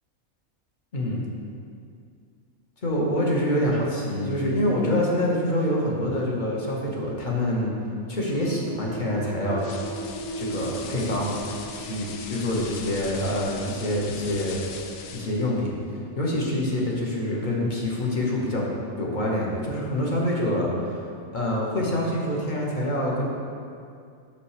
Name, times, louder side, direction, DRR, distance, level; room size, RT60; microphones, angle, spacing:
voice 1, 0.9-1.3 2.8-7.7 8.1-9.7 10.3-11.4 11.8-14.6 15.1-15.8 16.2-18.6 19.0-20.7 21.3-23.3, left 1 dB, 35° left, -3 dB, 1.1 m, -26 dB
sound 1, 7.7-18.8, right 1 dB, 15° left, 1.4 m, -40 dB
sound 2, 9.6-15.5, left 6 dB, 75° left, 1.0 m, -40 dB
5.9 x 5.8 x 4.9 m, 2.4 s
omnidirectional pair, 1.4 m